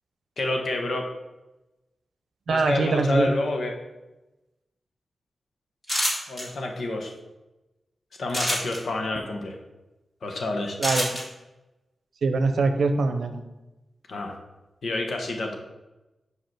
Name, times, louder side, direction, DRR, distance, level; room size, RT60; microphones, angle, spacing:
voice 1, 0.4-1.1 2.5-3.8 6.3-7.1 8.2-9.5 10.2-10.8 14.1-14.3 14.8-15.6, left 2 dB, 65° left, 2 dB, 1.1 m, -28 dB
voice 2, 2.5-3.3 10.8-11.1 12.2-13.4, right 3 dB, 80° right, 7 dB, 0.7 m, -23 dB
sound 1, 5.8-6.4 8.3-8.8 10.8-11.2, equal, 20° left, 2.1 m, -25 dB
5.3 x 4.9 x 5.9 m, 1.0 s
wide cardioid pair, 135°, 0 cm